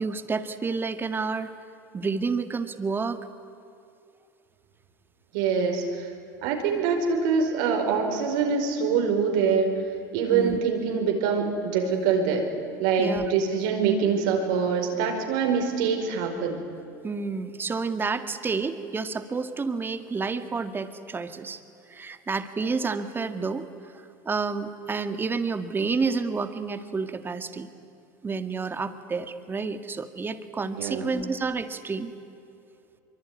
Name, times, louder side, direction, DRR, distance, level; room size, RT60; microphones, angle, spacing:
voice 1, 0.0-1.5 1.9-3.2 10.3-10.6 13.0-13.2 17.0-21.6 21.9-27.7 28.2-32.1, right 4 dB, 20° right, 10 dB, 1.9 m, -30 dB
voice 2, 5.3-6.1 6.4-9.7 10.1-12.4 12.8-16.6 30.8-31.2, right 5 dB, 75° right, 3 dB, 5.0 m, -24 dB
24.0 x 24.0 x 9.8 m, 2.6 s
supercardioid pair, 100°, 10 cm